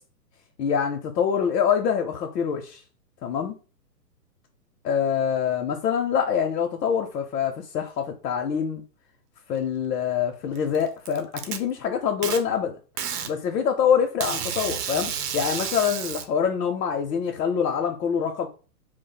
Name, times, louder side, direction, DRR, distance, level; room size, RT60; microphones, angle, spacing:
voice 1, 0.6-2.8 3.2-3.6 4.8-8.8 9.5-12.7 13.3-18.5, left 7 dB, 80° left, 3 dB, 0.6 m, -25 dB
Packing tape duct tape, 10.6-11.6 12.2-12.4 13.0-13.3 14.2-16.2, right 8 dB, 65° right, 0.6 m, -30 dB
2.3 x 2.0 x 3.8 m, 0.35 s
hypercardioid pair, 155°, 49 cm